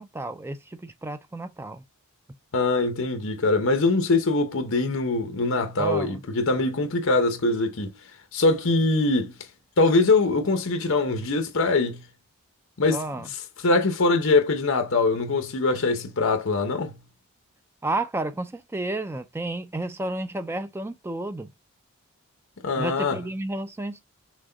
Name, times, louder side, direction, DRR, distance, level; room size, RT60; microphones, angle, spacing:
voice 1, 0.0-1.8 5.8-6.2 12.9-13.3 17.8-21.5 22.8-24.0, right 2 dB, 10° right, 0.3 m, -31 dB
voice 2, 2.5-7.9 8.3-9.3 9.8-12.0 12.8-13.0 13.6-17.0 22.6-23.2, left 3 dB, 65° left, 0.8 m, -23 dB
6.2 x 2.2 x 3.8 m
head